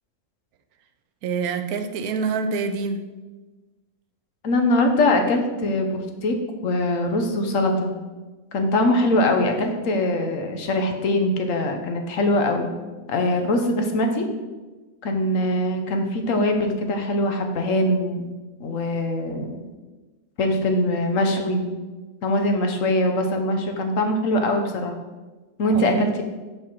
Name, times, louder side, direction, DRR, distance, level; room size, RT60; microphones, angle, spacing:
voice 1, 1.2-3.1 25.7-26.1, right 5 dB, 85° right, 8 dB, 1.1 m, -26 dB
voice 2, 4.4-6.3 6.6-7.9 8.5-12.7 13.1-14.3 15.0-18.3 18.6-19.6 20.4-21.7 22.2-24.9 25.6-26.2, left 1 dB, 65° left, 5 dB, 1.1 m, -22 dB
6.1 x 5.0 x 4.2 m, 1.2 s
omnidirectional pair, 1.5 m